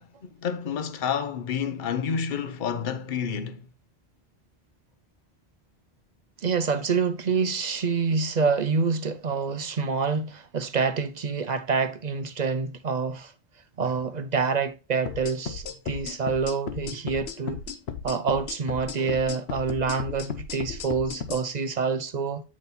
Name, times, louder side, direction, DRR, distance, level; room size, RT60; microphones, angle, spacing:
voice 1, 0.0-3.6, left 7 dB, 55° left, 0.9 m, -29 dB
voice 2, 6.4-13.3 13.8-17.6 18.0-22.4, right 5 dB, 50° right, 0.6 m, -27 dB
sound 1, 15.0-21.4, left 6 dB, 80° left, 1.0 m, -35 dB
8.6 x 4.1 x 3.9 m
omnidirectional pair, 1.1 m